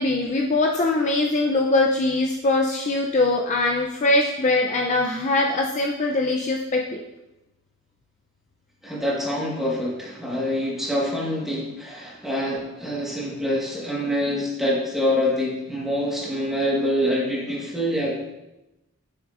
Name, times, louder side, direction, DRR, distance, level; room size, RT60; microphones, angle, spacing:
voice 1, 0.0-7.0, left 2 dB, 35° left, 0 dB, 0.4 m, -22 dB
voice 2, 8.8-18.3, left 1 dB, ahead, -5 dB, 1.4 m, -25 dB
7.1 x 6.1 x 2.5 m, 0.94 s
head